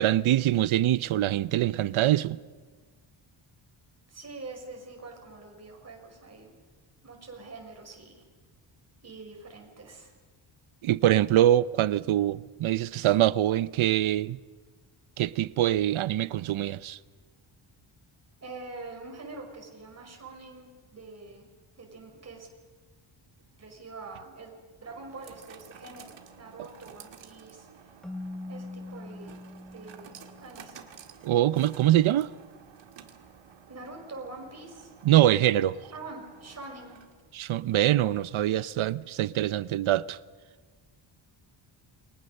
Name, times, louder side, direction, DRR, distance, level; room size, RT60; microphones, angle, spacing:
voice 1, 0.0-2.4 10.8-14.4 15.2-17.0 31.2-32.3 35.0-35.7 37.3-40.2, right 13 dB, 80° right, 0.8 m, -24 dB
voice 2, 4.1-6.5 7.0-8.2 9.0-10.1 18.4-21.5 21.8-22.5 23.6-27.9 28.5-29.4 29.7-30.8 33.7-34.9 35.3-35.6 35.9-37.0, right 3 dB, 30° right, 5.4 m, -45 dB
sound 1, 23.4-37.4, right 7 dB, 60° right, 2.2 m, -52 dB
Keyboard (musical), 28.0-30.8, left 2 dB, ahead, 0.9 m, -42 dB
29.0 x 23.0 x 6.6 m
wide cardioid pair, 150°, 48 cm